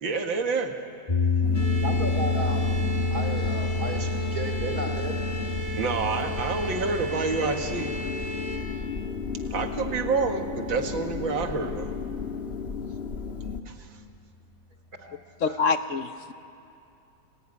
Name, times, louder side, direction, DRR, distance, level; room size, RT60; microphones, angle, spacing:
voice 1, 0.0-0.8 5.8-7.9 9.5-11.9 13.7-13.8, right 4 dB, 80° right, 5 dB, 2.5 m, -28 dB
sound 1, 1.1-11.3, left 3 dB, 20° left, 1.6 m, -30 dB
sound 2, 1.4-13.6, left 6 dB, 35° left, 1.5 m, -34 dB
sound 3, 1.5-8.6, equal, 85° left, 5.5 m, -36 dB
voice 2, 1.8-5.2 15.0-16.0, right 2 dB, 50° right, 5 dB, 3.2 m, -35 dB
voice 3, 15.4-16.3, left 5 dB, 50° left, 10 dB, 1.0 m, -26 dB
29.5 x 20.0 x 9.8 m, 2.6 s
omnidirectional pair, 2.1 m